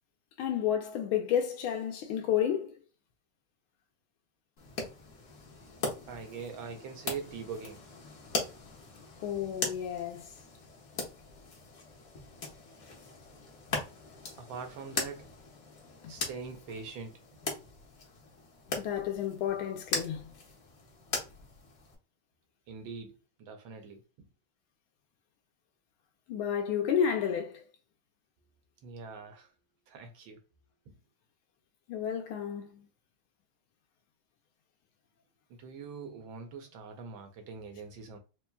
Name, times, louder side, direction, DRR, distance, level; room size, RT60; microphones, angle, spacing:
voice 1, 0.4-2.7 9.2-10.3 16.0-16.1 18.8-20.3 26.3-27.6 31.9-32.9, left 9 dB, 80° left, 1.4 m, -31 dB
sound 1, 4.6-22.0, left 3 dB, 50° left, 1.3 m, -40 dB
voice 2, 6.1-7.8 14.4-15.3 16.1-17.1 22.7-24.0 28.8-29.5 29.9-30.4 30.9-31.0 35.5-38.2, right 5 dB, 75° right, 1.3 m, -43 dB
4.6 x 2.9 x 2.2 m
omnidirectional pair, 2.4 m